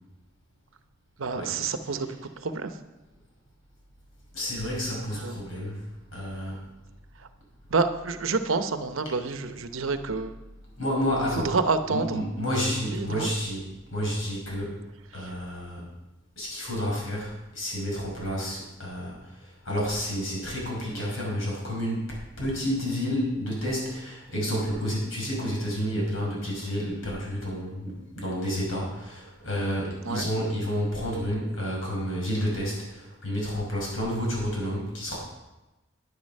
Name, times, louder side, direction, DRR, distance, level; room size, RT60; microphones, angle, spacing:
voice 1, 1.2-2.2 2.4-2.7 5.1-5.4 7.7-10.4 11.4-12.2 12.9-13.3 15.1-15.3 30.0-30.3, right 4 dB, 85° right, 9 dB, 0.8 m, -28 dB
voice 2, 4.3-6.8 10.8-11.5 11.9-14.8 15.1-15.8 16.4-35.2, equal, 90° left, -3 dB, 5.2 m, -30 dB
11.0 x 10.0 x 5.4 m, 1.0 s
head